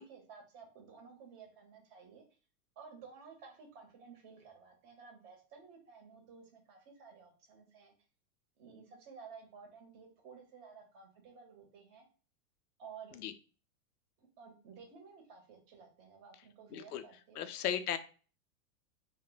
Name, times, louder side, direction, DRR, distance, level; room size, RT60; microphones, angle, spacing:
voice 1, 0.0-2.2 2.8-7.9 8.6-12.1 12.8-13.2 14.2-17.5, right 5 dB, 30° right, 2 dB, 0.8 m, -54 dB
voice 2, 16.7-17.0 17.4-18.0, left 9 dB, 90° left, 10 dB, 0.6 m, -35 dB
2.2 x 2.1 x 3.8 m, 0.37 s
hypercardioid pair, 140°, 44 cm